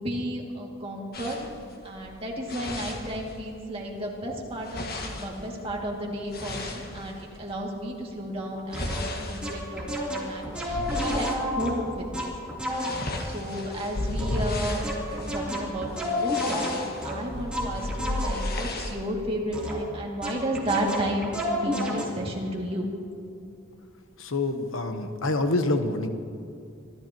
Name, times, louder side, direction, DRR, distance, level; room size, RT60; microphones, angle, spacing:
voice 1, 0.0-1.4 1.8-12.5 12.8-12.9 13.2-22.9, right 1 dB, 30° right, -2 dB, 2.3 m, -33 dB
sound 1, 1.1-3.6 3.9-7.6 8.1-11.5 11.9-12.2 12.4-19.0, left 1 dB, 50° left, 1.7 m, -34 dB
sound 2, 8.7-9.0 9.4-13.1 14.2-18.6 19.5-20.0 20.2-22.0, left 1 dB, 5° right, 3.2 m, -31 dB
voice 2, 24.2-26.1, left 2 dB, 80° left, 7 dB, 1.1 m, -26 dB
26.0 x 13.5 x 3.0 m, 2.5 s
head